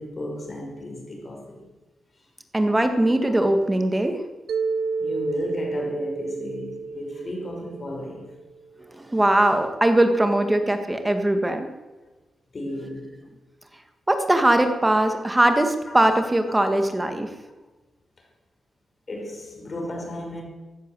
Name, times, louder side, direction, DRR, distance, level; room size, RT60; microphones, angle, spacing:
voice 1, 0.0-1.7 3.2-3.3 3.9-4.0 5.0-8.3 9.8-10.0 10.4-10.6 12.5-13.2 14.5-14.6 14.9-15.6 15.9-16.1 16.6-17.3 19.1-20.4, left 1 dB, 40° left, 5.4 m, -35 dB
voice 2, 2.5-4.2 8.9-11.7 14.1-17.3, right 1 dB, 15° right, 2.0 m, -20 dB
Mallet percussion, 4.5-8.6, right 4 dB, 80° right, 1.1 m, -31 dB
15.5 x 11.0 x 7.9 m
cardioid pair, 100°, 0 cm